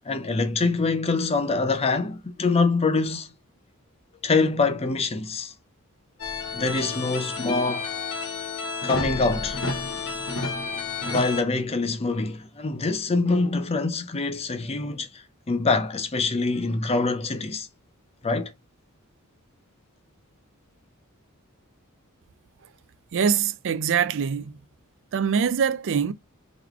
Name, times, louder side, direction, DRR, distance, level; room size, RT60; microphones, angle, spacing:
voice 1, 0.1-3.3 4.2-5.5 6.5-7.9 8.8-9.6 11.0-17.7 18.2-18.5, left 3 dB, 30° left, 0.6 m, -25 dB
sound 1, 6.2-11.4, left 3 dB, 65° left, 1.3 m, -30 dB
voice 2, 23.1-24.6 25.1-26.1, right 7 dB, 55° right, 0.4 m, -23 dB
3.7 x 3.1 x 3.4 m
head